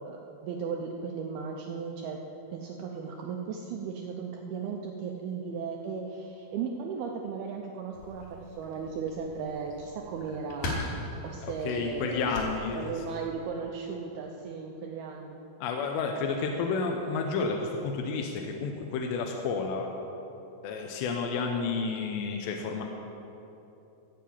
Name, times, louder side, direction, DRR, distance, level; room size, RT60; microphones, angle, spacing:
voice 1, 0.0-2.2 2.5-10.9 11.2-12.4 12.7-15.4, right 5 dB, 80° right, 1 dB, 2.2 m, -36 dB
sound 1, 7.9-13.3, left 1 dB, 60° left, 3.4 m, -40 dB
voice 2, 11.4-12.9 15.6-19.9 20.6-22.8, left 4 dB, 80° left, 2 dB, 2.9 m, -31 dB
15.0 x 5.7 x 8.5 m, 2.9 s
omnidirectional pair, 5.2 m